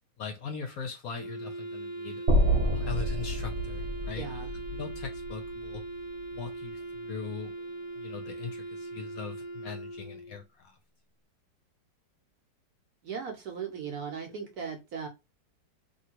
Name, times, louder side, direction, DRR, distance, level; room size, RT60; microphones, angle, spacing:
voice 1, 0.2-2.2 2.7-4.4 4.7-5.8 6.3-7.5 8.0-10.8, left 5 dB, 65° left, 0.9 m, -40 dB
Wind instrument woodwind instrument, 1.1-10.4, right 2 dB, 10° right, 1.0 m, -40 dB
sound 1, 2.3-6.5, equal, 45° right, 1.1 m, -29 dB
voice 2, 4.1-4.5 13.0-15.1, right 6 dB, 65° right, 1.1 m, -37 dB
3.1 x 2.6 x 2.8 m
omnidirectional pair, 2.0 m